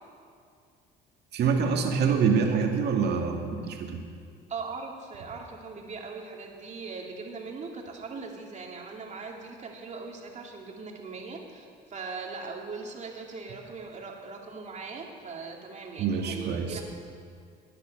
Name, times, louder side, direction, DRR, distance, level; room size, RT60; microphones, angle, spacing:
voice 1, 1.3-4.0 16.0-16.8, right 6 dB, 60° right, 2 dB, 2.1 m, -26 dB
voice 2, 4.5-16.8, right 4 dB, 40° right, 0 dB, 2.5 m, -40 dB
13.0 x 9.9 x 6.5 m, 2.3 s
supercardioid pair, 85°, 19 cm